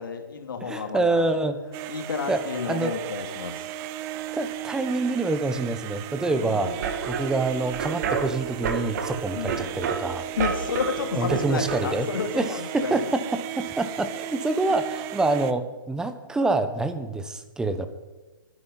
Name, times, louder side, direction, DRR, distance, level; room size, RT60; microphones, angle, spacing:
voice 1, 0.0-1.3 1.9-3.7 6.3-6.8 9.3-9.7 10.4-13.1, left 6 dB, 65° left, 5 dB, 2.6 m, -31 dB
voice 2, 0.6-1.6 2.3-2.4 2.7-2.9 4.3-6.7 7.1-10.2 11.1-12.1 12.4-13.2 13.6-17.9, right 2 dB, 5° right, 10 dB, 1.0 m, -26 dB
sound 1, 1.7-15.5, right 13 dB, 25° right, 0.7 m, -36 dB
sound 2, 6.7-11.8, right 6 dB, 50° right, 2.1 m, -31 dB
23.5 x 9.9 x 4.1 m, 1.2 s
hypercardioid pair, 135°, 12 cm